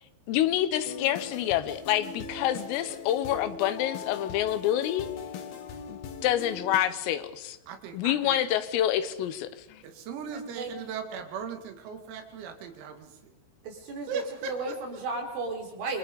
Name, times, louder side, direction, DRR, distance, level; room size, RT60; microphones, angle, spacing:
voice 1, 0.3-5.1 5.9-7.6 7.9-9.8, left 12 dB, 80° left, 12 dB, 3.8 m, -27 dB
sound 1, 0.8-6.8, left 5 dB, 55° left, 3.4 m, -40 dB
voice 2, 7.7-8.4 9.8-13.3 14.1-15.0, right 6 dB, 85° right, 6 dB, 4.9 m, -38 dB
voice 3, 10.3-10.7 13.6-16.0, right 3 dB, 65° right, 2 dB, 6.7 m, -34 dB
29.0 x 24.0 x 5.4 m, 0.84 s
omnidirectional pair, 5.9 m